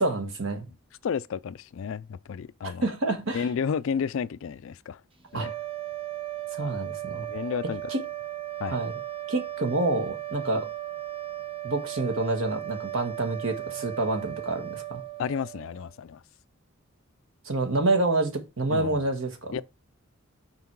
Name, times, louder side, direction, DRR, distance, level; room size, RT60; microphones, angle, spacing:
voice 1, 0.0-0.7 2.6-3.5 5.3-5.5 6.5-7.3 7.9-8.0 8.7-8.9 9.3-10.7 11.6-15.0 17.4-19.6, right 2 dB, 75° right, 1.5 m, -28 dB
voice 2, 1.0-2.9 3.3-5.0 5.3-5.5 6.6-6.8 7.1-7.9 8.6-8.8 15.2-16.2 18.7-19.0 19.5-19.6, left 6 dB, 65° left, 0.3 m, -32 dB
sound 1, 5.3-15.9, right 14 dB, 25° right, 0.8 m, -36 dB
5.9 x 4.5 x 4.6 m
head